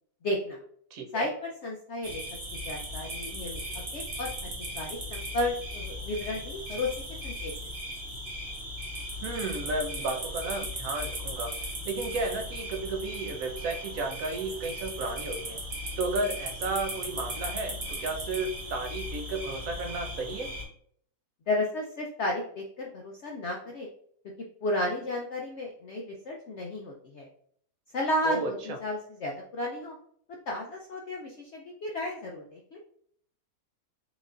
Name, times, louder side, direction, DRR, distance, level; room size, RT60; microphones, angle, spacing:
voice 1, 0.2-0.6 1.1-2.2 2.6-4.3 4.6-6.9 7.2-7.5 21.5-23.9 24.6-27.3 27.9-29.9 30.5-32.8, left 1 dB, 60° left, -1 dB, 0.8 m, -33 dB
voice 2, 0.9-1.3 9.2-11.6 11.8-15.6 16.0-20.5 28.2-28.8, right 2 dB, 65° right, 5 dB, 1.2 m, -33 dB
sound 1, 2.0-20.6, equal, 45° right, 1.2 m, -37 dB
5.1 x 4.0 x 2.5 m, 0.63 s
omnidirectional pair, 1.7 m